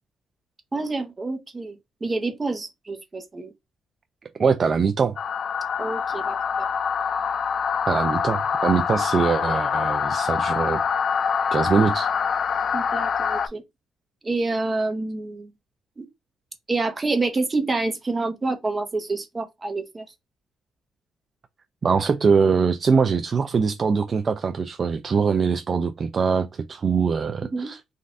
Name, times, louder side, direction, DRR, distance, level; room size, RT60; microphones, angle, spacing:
voice 1, 0.7-3.5 5.8-6.3 12.7-13.6 14.2-15.5 16.0-16.1 16.7-20.0 27.5-27.7, right 3 dB, 25° right, 0.9 m, -27 dB
voice 2, 4.4-5.2 7.9-10.8 11.5-12.1 21.8-27.8, right 5 dB, 45° right, 0.3 m, -22 dB
sound 1, 5.2-13.5, left 6 dB, 55° left, 0.3 m, -25 dB
3.2 x 2.5 x 2.5 m
cardioid pair, 90°, 0 cm